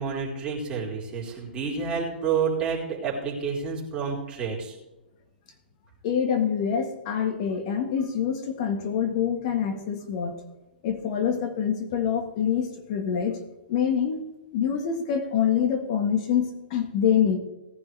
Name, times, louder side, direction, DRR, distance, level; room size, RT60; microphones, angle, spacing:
voice 1, 0.0-4.8, right 6 dB, 20° right, -4 dB, 4.1 m, -29 dB
voice 2, 6.0-10.4 10.8-13.4 13.7-17.4, left 8 dB, 45° left, 5 dB, 1.7 m, -26 dB
18.0 x 10.5 x 3.4 m, 0.99 s
hypercardioid pair, 140°, 5 cm